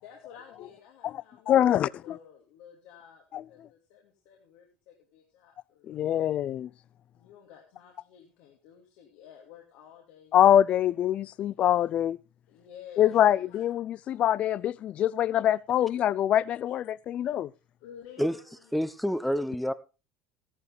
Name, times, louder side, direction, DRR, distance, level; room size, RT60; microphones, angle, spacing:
voice 1, 0.0-6.0 7.1-10.4 12.5-13.7 14.9-15.0 15.8-15.9 17.8-19.2, left 9 dB, 80° left, 2.6 m, -52 dB
voice 2, 1.5-2.2 3.3-3.4 5.9-6.7 10.3-12.2 13.0-17.5, left 11 dB, 50° left, 0.5 m, -24 dB
voice 3, 18.7-19.7, equal, ahead, 0.9 m, -28 dB
13.5 x 11.0 x 3.4 m
supercardioid pair, 105°, 3 cm